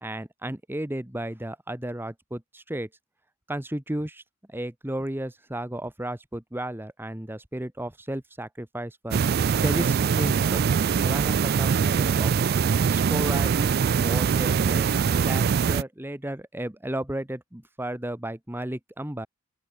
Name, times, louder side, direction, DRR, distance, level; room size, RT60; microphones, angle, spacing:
voice 1, 0.0-2.9 3.5-4.2 4.5-9.2 9.6-10.6 11.0-12.3 12.9-13.7 14.0-14.9 15.2-19.3, right 1 dB, 10° right, 1.2 m, -33 dB
sound 1, 9.1-15.8, right 6 dB, 50° right, 0.4 m, -23 dB
open air
head